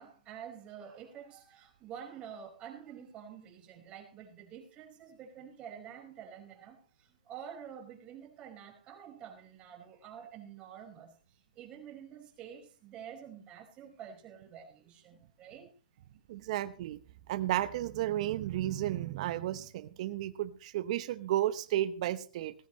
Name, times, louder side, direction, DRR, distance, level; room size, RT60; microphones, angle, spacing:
voice 1, 0.0-6.8 7.3-11.1 11.5-15.7, right 8 dB, 25° right, 5.0 m, -48 dB
voice 2, 16.3-17.0 17.3-22.5, right 13 dB, 45° right, 0.9 m, -33 dB
18.0 x 14.5 x 3.1 m
hypercardioid pair, 140°, 5 cm